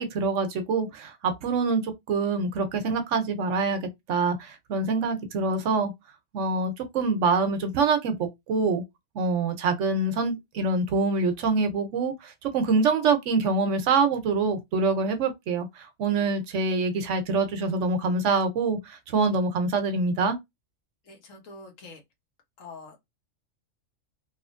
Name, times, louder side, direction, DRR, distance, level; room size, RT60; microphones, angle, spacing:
voice 1, 0.0-3.8 4.1-5.9 6.3-8.8 9.1-20.4, right 4 dB, 70° right, 1.0 m, -25 dB
voice 2, 21.0-22.0 22.6-23.0, left 3 dB, 80° left, 1.3 m, -45 dB
3.0 x 2.4 x 2.5 m
omnidirectional pair, 1.3 m